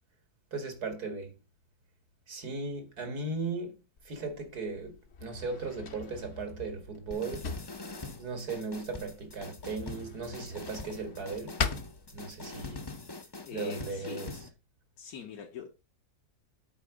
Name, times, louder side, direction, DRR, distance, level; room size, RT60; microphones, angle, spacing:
voice 1, 0.5-1.3 2.3-3.8 4.0-5.0 5.2-7.5 8.2-11.6 12.1-12.8 13.5-14.3, right 3 dB, 85° right, 2.7 m, -37 dB
Drawer open or close, 4.0-12.7, left 5 dB, 50° left, 1.1 m, -41 dB
sound 1, 7.1-14.5, left 3 dB, 25° left, 0.5 m, -43 dB
voice 2, 13.5-14.3 15.0-15.8, left 7 dB, 70° left, 1.6 m, -43 dB
8.1 x 4.7 x 6.3 m
omnidirectional pair, 1.6 m